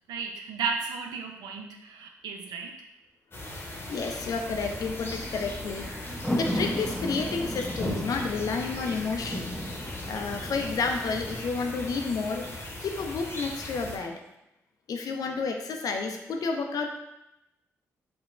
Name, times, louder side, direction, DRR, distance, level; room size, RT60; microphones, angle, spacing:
voice 1, 0.1-2.8, right 5 dB, 80° right, 3 dB, 0.4 m, -34 dB
sound 1, 3.3-14.0, left 1 dB, 35° left, 0.8 m, -38 dB
voice 2, 3.9-5.9 6.3-9.5 10.1-12.5 12.8-14.2 14.9-17.0, left 4 dB, 65° left, 4 dB, 0.4 m, -30 dB
sound 2, 4.0-11.4, equal, ahead, 0.6 m, -36 dB
3.6 x 2.1 x 2.4 m, 0.88 s
supercardioid pair, 45°, 7 cm